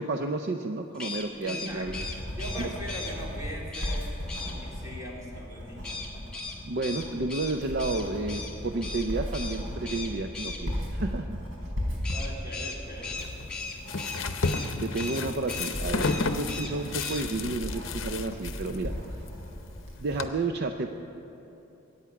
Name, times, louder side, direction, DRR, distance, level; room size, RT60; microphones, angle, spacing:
voice 1, 0.0-2.1 2.6-2.7 6.6-11.4 14.8-18.9 20.0-20.9, right 3 dB, 55° right, 6 dB, 0.5 m, -31 dB
sound 1, 0.9-3.1 3.7-4.0 4.3-4.5 5.8-8.5 8.8-9.1 9.3-9.6 9.8-10.6 12.0-14.7 14.9-15.2 15.5-15.7 16.0-16.7 17.0-17.2, left 3 dB, 5° left, 1.5 m, -37 dB
voice 2, 1.4-2.1 2.4-4.1 4.4-6.2 12.1-13.5, equal, 15° right, -3 dB, 2.6 m, -41 dB
Writing, 1.4-20.0, equal, 80° right, 4.1 m, -37 dB
sound 2, 13.2-20.3, left 3 dB, 70° left, 0.7 m, -33 dB
22.5 x 8.9 x 5.9 m, 3.0 s
head